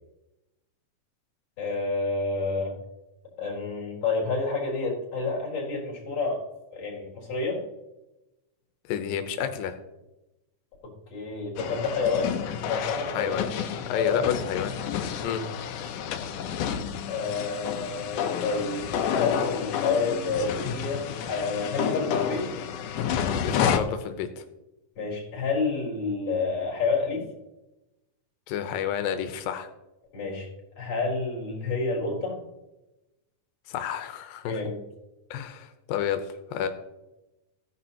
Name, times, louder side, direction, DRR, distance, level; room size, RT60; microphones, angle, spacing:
voice 1, 1.6-2.7 3.4-6.4 6.7-7.6 11.1-12.4 12.7-13.3 14.0-14.3 15.2-15.4 17.1-18.9 19.1-22.5 25.0-27.3 30.1-30.5 30.8-32.4 34.4-34.8, left 4 dB, 45° left, -3 dB, 5.0 m, -29 dB
voice 2, 8.9-9.8 13.1-13.5 13.9-14.7 15.2-15.4 23.4-24.4 28.5-29.7 33.7-34.6 35.3-36.2 36.5-36.7, left 9 dB, 90° left, 8 dB, 2.6 m, -30 dB
sound 1, 11.6-23.8, left 8 dB, 75° left, 2.3 m, -30 dB
15.5 x 10.5 x 2.9 m, 0.97 s
omnidirectional pair, 4.0 m